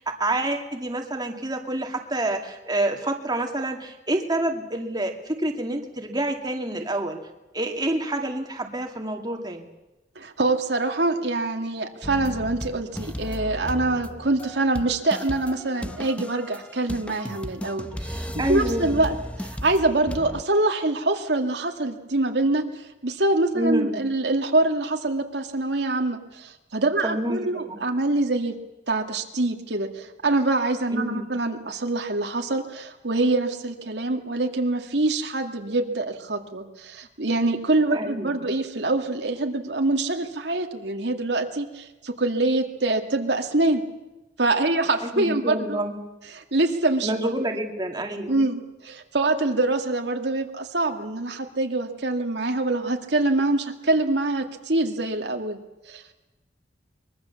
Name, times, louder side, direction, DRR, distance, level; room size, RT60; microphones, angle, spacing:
voice 1, 0.1-7.2 7.5-9.7 18.4-19.1 23.5-24.1 27.0-27.8 30.9-31.3 37.9-38.5 45.0-46.0 47.0-48.5, right 1 dB, 25° right, 2 dB, 2.3 m, -28 dB
voice 2, 10.2-22.6 23.0-28.5 28.9-43.8 44.4-45.8 46.3-47.1 48.3-55.6 55.9-56.0, right 2 dB, 75° right, 4 dB, 2.2 m, -25 dB
sound 1, 12.0-20.4, equal, 5° left, 0.9 m, -35 dB
24.0 x 22.5 x 7.1 m, 1.0 s
head